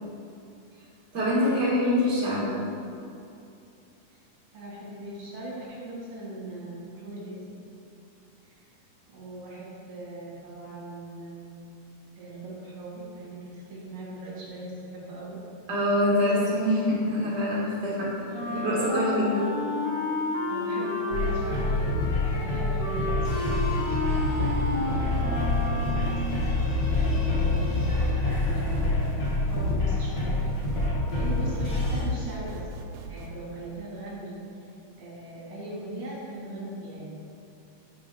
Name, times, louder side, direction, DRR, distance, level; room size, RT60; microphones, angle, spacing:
voice 1, 1.1-2.6 15.7-19.5, left 1 dB, 40° right, -7 dB, 2.0 m, -25 dB
voice 2, 4.5-7.5 8.4-8.6 9.1-11.6 12.2-15.4 16.2-16.5 20.5-23.4 23.8-24.1 24.7-26.4 27.3-29.1 29.4-30.4 31.1-34.4 34.6-34.7 35.0-37.1, right 2 dB, 55° right, -6 dB, 3.0 m, -40 dB
Wind instrument woodwind instrument, 18.3-26.4, left 2 dB, 80° left, 2.5 m, -31 dB
sound 1, 21.1-32.0, left 2 dB, 65° left, 1.1 m, -26 dB
sound 2, 25.1-33.3, right 4 dB, 80° right, 2.0 m, -41 dB
9.4 x 5.1 x 3.7 m, 2.6 s
omnidirectional pair, 3.6 m